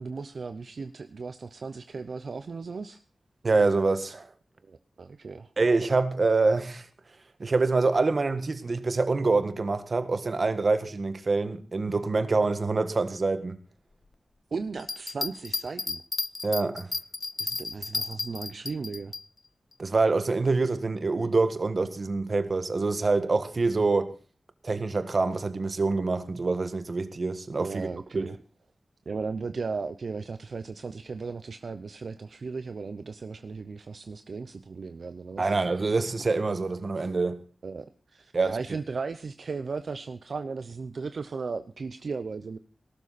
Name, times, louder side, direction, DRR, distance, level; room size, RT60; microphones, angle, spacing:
voice 1, 0.0-3.0 4.7-5.5 14.5-16.0 17.4-19.1 27.6-28.4 29.1-35.5 37.6-42.6, right 4 dB, 65° right, 0.8 m, -36 dB
voice 2, 3.4-4.3 5.6-6.8 7.4-13.6 16.4-16.9 19.8-24.1 24.6-27.9 28.1-28.3 35.4-37.4 38.3-38.6, right 3 dB, 45° right, 1.6 m, -25 dB
sound 1, 14.8-19.2, left 3 dB, 50° left, 0.7 m, -33 dB
18.5 x 12.5 x 4.2 m
wide cardioid pair, 115°, 0 cm